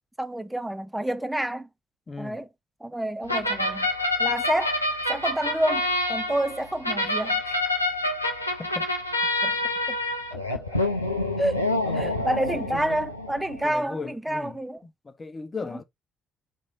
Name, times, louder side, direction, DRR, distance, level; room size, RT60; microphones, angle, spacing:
voice 1, 0.2-1.7 2.2-2.5 2.8-3.9 4.2-4.8 5.1-7.6 11.4-14.8 15.6-15.8, right 1 dB, 10° right, 0.6 m, -29 dB
voice 2, 2.1-2.4 8.6-8.9 9.4-9.6 9.9-10.0 10.3-10.9 11.8-12.3 12.5-13.0 13.6-14.6 15.0-15.8, left 4 dB, 30° left, 0.7 m, -37 dB
sound 1, 3.3-13.6, left 2 dB, 85° left, 0.5 m, -27 dB
4.4 x 3.1 x 3.8 m
figure-of-eight pair, 45°, 0 cm